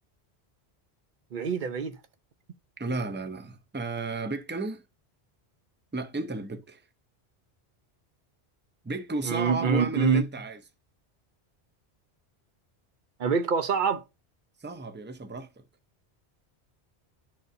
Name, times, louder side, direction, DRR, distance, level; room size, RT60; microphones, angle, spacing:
voice 1, 1.3-2.0 9.2-10.2 13.2-14.0, right 5 dB, 55° right, 0.8 m, -25 dB
voice 2, 2.8-4.8 5.9-6.8 8.8-10.6 14.6-15.5, right 3 dB, 15° right, 0.4 m, -33 dB
12.0 x 4.0 x 2.6 m
omnidirectional pair, 1.1 m